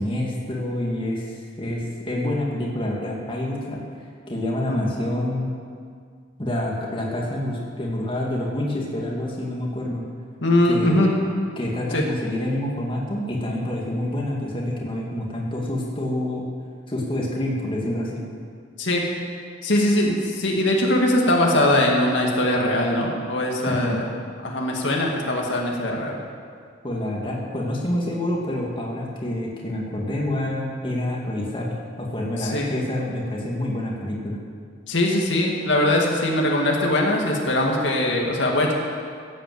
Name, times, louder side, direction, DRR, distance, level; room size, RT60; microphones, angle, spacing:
voice 1, 0.0-3.8 4.3-5.5 6.4-10.0 10.7-11.0 11.6-16.5 16.9-18.2 23.7-24.0 26.8-31.7 32.0-34.4, left 1 dB, 25° left, -3 dB, 2.3 m, -27 dB
voice 2, 10.4-11.1 11.9-12.0 18.8-19.0 19.6-24.1 24.4-26.2 32.4-32.7 34.9-38.7, left 1 dB, 70° left, -1 dB, 2.2 m, -21 dB
16.0 x 8.9 x 7.9 m, 2.1 s
head